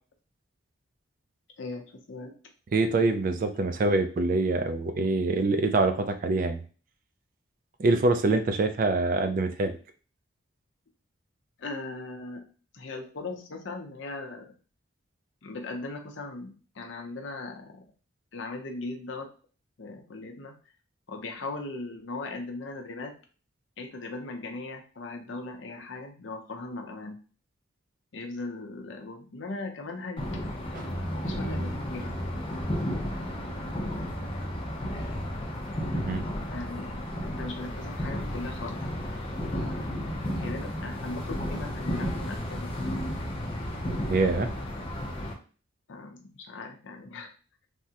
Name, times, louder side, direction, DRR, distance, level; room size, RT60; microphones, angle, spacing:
voice 1, 1.6-2.3 11.6-12.4 12.7-14.5 15.4-17.8 18.3-19.3 19.8-20.5 21.1-23.1 23.8-27.2 28.1-30.3 31.0-32.2 36.5-38.8 39.5-40.0 40.3-42.9 45.9-47.3, left 3 dB, 65° left, 3 dB, 0.6 m, -39 dB
voice 2, 2.7-6.6 7.8-9.7 30.7-31.0 35.9-36.2 44.1-44.5, right 3 dB, 45° right, 8 dB, 0.3 m, -25 dB
sound 1, 30.2-45.3, equal, 25° left, 0.5 m, -33 dB
3.4 x 2.0 x 2.8 m, 0.38 s
head